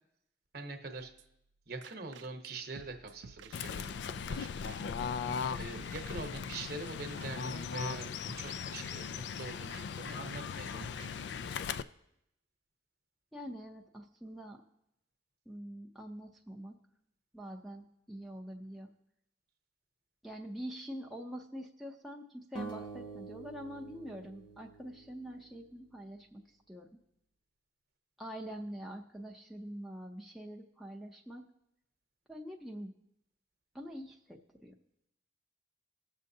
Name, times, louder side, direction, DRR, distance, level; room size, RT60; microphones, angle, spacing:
voice 1, 0.5-1.1 1.7-4.5 5.6-11.5, right 3 dB, 55° right, 5 dB, 1.0 m, -44 dB
sound 1, 1.0-1.5 1.8-2.5 2.8-4.1 4.3-4.4 4.7-5.0 5.3-6.6 6.9-7.0 7.2-7.6 7.8-9.1 9.4-9.5 9.7-10.1 10.3-11.6, right 5 dB, 75° right, 0.4 m, -55 dB
Fowl / Bird, 3.5-11.8, left 6 dB, 65° left, 0.3 m, -38 dB
voice 2, 13.3-14.6 15.5-16.8 17.3-18.9 20.2-26.4 26.7-26.9 28.2-31.5 32.3-32.9 33.7-34.7, equal, ahead, -2 dB, 0.5 m, -45 dB
sound 2, 22.6-25.7, right 4 dB, 25° left, 1.0 m, -46 dB
19.0 x 6.5 x 2.7 m, 0.81 s
head